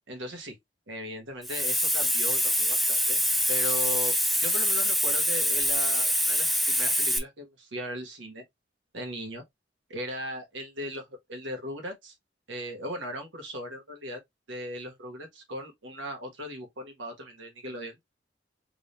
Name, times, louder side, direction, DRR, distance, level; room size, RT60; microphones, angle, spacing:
voice 1, 0.1-0.6 0.9-3.2 3.5-4.2 4.4-8.4 8.9-9.4 9.9-12.1 12.5-14.2 14.5-18.0, equal, 85° right, 1.6 m, -38 dB
Hiss, 1.4-7.2, equal, ahead, 0.5 m, -25 dB
3.7 x 3.4 x 2.7 m
head